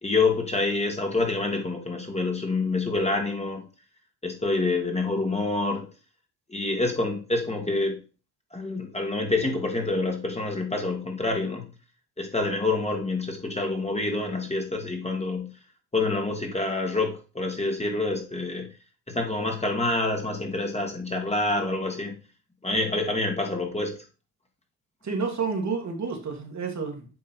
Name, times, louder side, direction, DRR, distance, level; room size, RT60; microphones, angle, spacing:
voice 1, 0.0-3.6 4.2-5.9 6.5-8.0 8.5-11.7 12.2-15.5 15.9-18.7 19.1-22.1 22.6-24.0, left 3 dB, 20° left, 2 dB, 1.9 m, -27 dB
voice 2, 25.0-27.1, right 5 dB, 50° right, 1 dB, 2.0 m, -30 dB
8.6 x 3.1 x 4.3 m, 0.33 s
supercardioid pair, 60°, 35 cm